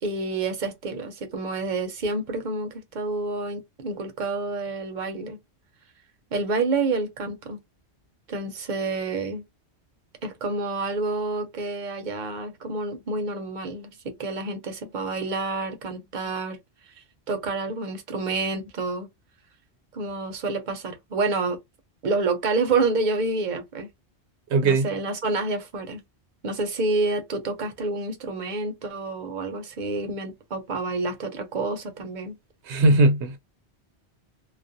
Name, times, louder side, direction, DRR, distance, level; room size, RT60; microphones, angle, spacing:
voice 1, 0.0-5.4 6.3-7.6 8.3-9.4 10.2-16.6 17.3-19.1 19.9-21.6 22.0-23.9 24.6-26.0 26.4-32.3, right 3 dB, 50° right, 0.7 m, -28 dB
voice 2, 24.5-24.9 32.7-33.4, right 2 dB, 90° right, 1.0 m, -19 dB
2.4 x 2.1 x 2.6 m
omnidirectional pair, 1.1 m